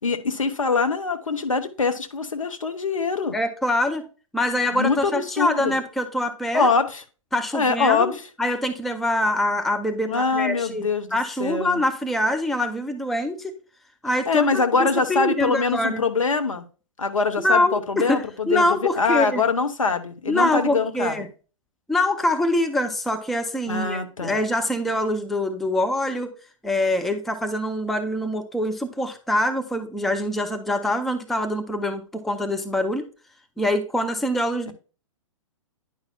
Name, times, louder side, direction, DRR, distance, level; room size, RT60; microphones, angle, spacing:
voice 1, 0.0-3.3 4.7-5.8 6.5-7.0 7.5-8.2 10.0-11.8 14.3-16.6 17.0-21.3 23.7-24.4 34.7-34.8, left 4 dB, 75° left, 8 dB, 1.0 m, -23 dB
voice 2, 3.3-4.1 4.3-6.7 7.3-13.5 14.0-16.0 17.4-19.4 20.3-21.3 21.9-26.3 26.6-33.1 33.6-34.7, left 1 dB, ahead, 7 dB, 0.4 m, -24 dB
9.8 x 5.5 x 2.3 m, 0.36 s
figure-of-eight pair, 115°, 17 cm